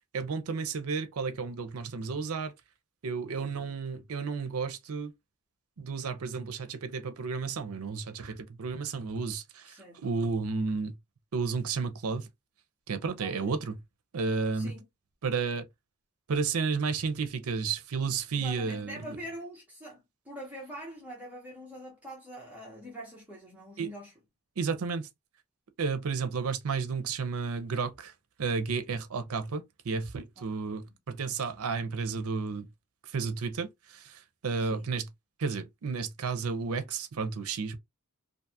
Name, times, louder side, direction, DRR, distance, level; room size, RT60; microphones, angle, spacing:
voice 1, 0.1-2.5 3.0-5.1 5.8-10.9 11.3-12.3 12.9-13.8 14.1-14.7 15.2-15.6 16.3-19.2 23.8-23.9 24.6-25.1 25.8-28.1 28.4-32.7 33.0-35.1 35.4-37.8, right 5 dB, 75° right, 0.5 m, -32 dB
voice 2, 3.3-3.7 9.6-10.1 13.2-13.5 14.5-14.8 18.3-24.1 30.4-31.0 34.6-35.0, equal, 5° right, 0.8 m, -45 dB
2.5 x 2.3 x 2.6 m
head